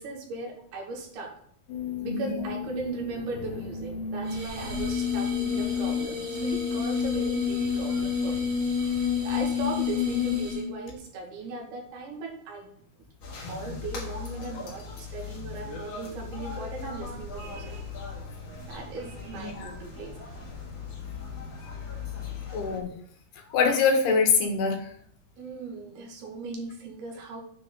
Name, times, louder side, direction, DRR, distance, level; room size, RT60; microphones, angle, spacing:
voice 1, 0.0-1.3 2.0-8.6 8.8-12.7 13.5-17.9 18.7-20.4 25.4-27.4, right 3 dB, 80° right, 1 dB, 3.9 m, -38 dB
sound 1, 1.7-10.5, left 4 dB, 65° left, 2.4 m, -36 dB
sound 2, 4.3-10.8, left 7 dB, 55° right, 4.0 m, -29 dB
sound 3, 13.2-22.8, left 5 dB, 45° left, 2.9 m, -39 dB
voice 2, 22.5-22.9 23.5-24.8, left 5 dB, 85° left, 3 dB, 3.6 m, -24 dB
9.0 x 6.4 x 3.8 m, 0.64 s
omnidirectional pair, 4.5 m